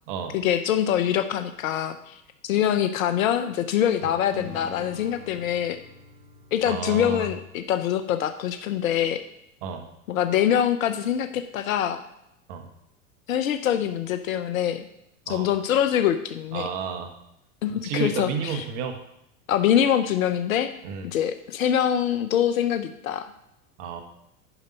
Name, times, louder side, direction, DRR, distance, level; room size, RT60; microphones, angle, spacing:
voice 1, 0.3-2.2 2.4-5.8 6.5-9.2 10.1-12.0 13.3-14.8 15.3-16.7 17.6-18.6 19.5-20.7 21.0-23.3, left 10 dB, 75° left, 9 dB, 0.8 m, -24 dB
sound 1, 4.3-7.9, right 1 dB, 75° right, 3.3 m, -46 dB
voice 2, 6.7-7.3 9.6-9.9 12.5-12.7 15.3-15.5 16.5-17.1 17.7-18.9 20.8-21.1 23.8-24.0, right 6 dB, 55° right, 6 dB, 1.3 m, -31 dB
10.5 x 5.4 x 5.2 m, 0.79 s
hypercardioid pair, 100°, 41 cm